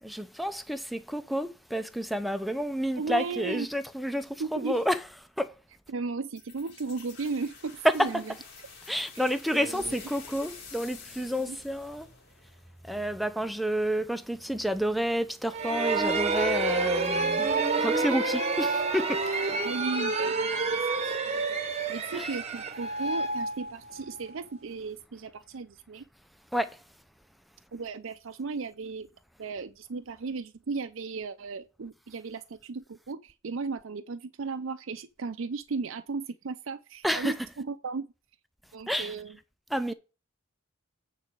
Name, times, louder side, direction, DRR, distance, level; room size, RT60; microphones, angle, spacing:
voice 1, 0.0-5.0 5.4-5.5 7.8-8.1 8.9-12.1 12.9-17.5 17.8-19.2 22.1-22.3 26.5-26.8 37.0-37.3 38.9-39.1 39.7-39.9, equal, ahead, 0.6 m, -29 dB
voice 2, 3.0-3.7 4.4-4.8 5.9-8.2 9.1-10.0 11.4-11.6 19.6-21.6 21.9-26.0 27.7-29.1 29.4-38.1 38.7-39.4, right 4 dB, 65° right, 0.5 m, -36 dB
sound 1, 6.3-13.0, left 5 dB, 50° left, 2.3 m, -49 dB
sound 2, 15.5-24.2, right 3 dB, 30° right, 1.0 m, -28 dB
9.0 x 4.1 x 6.2 m
head